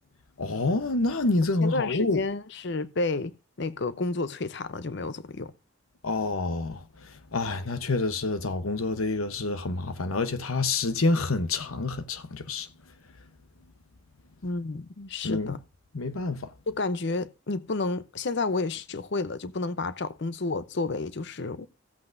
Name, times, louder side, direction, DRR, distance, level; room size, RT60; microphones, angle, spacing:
voice 1, 0.4-2.2 6.0-6.8 7.3-12.7 15.2-15.6 15.9-16.4, left 3 dB, 85° left, 0.9 m, -27 dB
voice 2, 1.6-5.5 14.4-15.6 16.7-21.7, left 3 dB, 55° left, 0.7 m, -31 dB
15.5 x 8.1 x 2.6 m
head